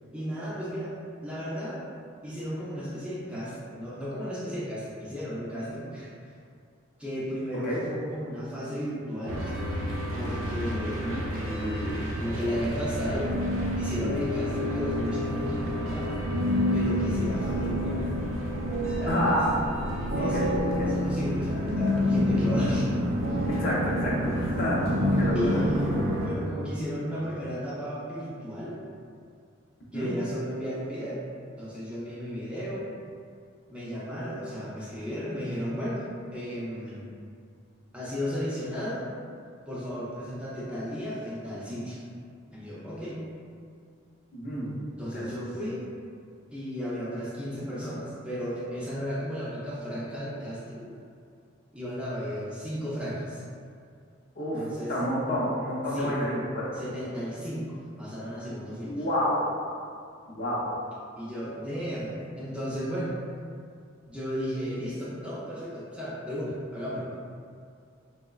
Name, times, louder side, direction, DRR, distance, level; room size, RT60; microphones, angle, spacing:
voice 1, 0.1-0.9 1.2-1.8 2.2-6.1 7.0-9.6 10.2-11.0 11.3-13.3 13.8-16.1 16.7-18.1 18.7-19.4 20.2-22.9 23.3-23.4 25.3-25.9 26.2-28.8 29.9-31.2 31.6-32.9 33.7-36.0 36.3-37.1 37.9-39.0 39.7-42.0 42.5-43.2 45.0-45.8 46.5-50.9 51.7-53.4 54.5-54.9 55.9-56.2 56.7-59.0 61.2-63.1 64.1-67.1, equal, 5° right, -8 dB, 0.3 m, -34 dB
sound 1, 9.3-26.3, equal, 90° right, 0.5 m, -28 dB
voice 2, 19.1-19.5 20.2-20.5 20.8-20.9 23.5-24.8 25.2-25.6 29.9-30.1 44.3-44.8 45.1-45.3 54.4-56.7 58.9-59.4 60.3-60.6, equal, 45° left, -5 dB, 0.5 m, -29 dB
3.1 x 2.0 x 2.3 m, 2.2 s
head